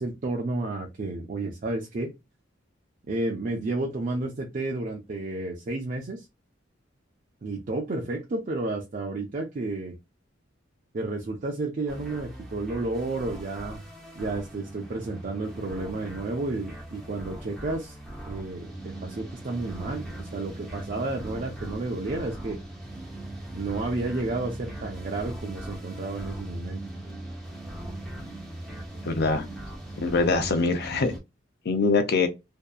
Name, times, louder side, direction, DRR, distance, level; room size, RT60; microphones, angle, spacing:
voice 1, 0.0-2.1 3.1-6.3 7.4-9.9 10.9-13.8 14.2-18.0 18.2-22.6 23.5-26.8, right 2 dB, 40° right, 0.4 m, -31 dB
sound 1, 11.9-31.2, right 1 dB, ahead, 0.7 m, -39 dB
voice 2, 29.0-29.4 30.0-31.2 31.6-32.3, left 3 dB, 55° left, 0.5 m, -23 dB
2.7 x 2.2 x 2.3 m
head